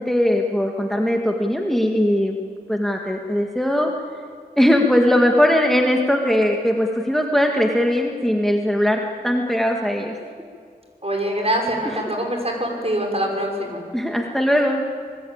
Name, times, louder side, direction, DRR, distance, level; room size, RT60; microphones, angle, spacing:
voice 1, 0.0-2.4 2.7-3.9 4.6-10.2 13.9-14.8, left 1 dB, ahead, 1 dB, 2.0 m, -20 dB
voice 2, 11.0-13.8, right 1 dB, 40° right, 1 dB, 6.0 m, -24 dB
26.5 x 20.0 x 8.8 m, 2.1 s
wide cardioid pair, 50°, 16 cm